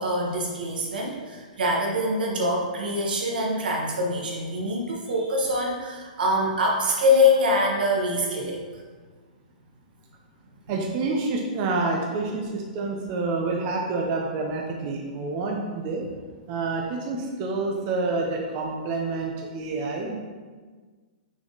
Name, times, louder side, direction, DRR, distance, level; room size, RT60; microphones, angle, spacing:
voice 1, 0.0-8.6 10.6-10.7, left 1 dB, 85° right, -1 dB, 1.5 m, -24 dB
voice 2, 10.7-16.0 16.5-20.2, right 3 dB, 30° right, 0 dB, 0.6 m, -28 dB
6.0 x 4.2 x 3.9 m, 1.5 s
hypercardioid pair, 160°, 5 cm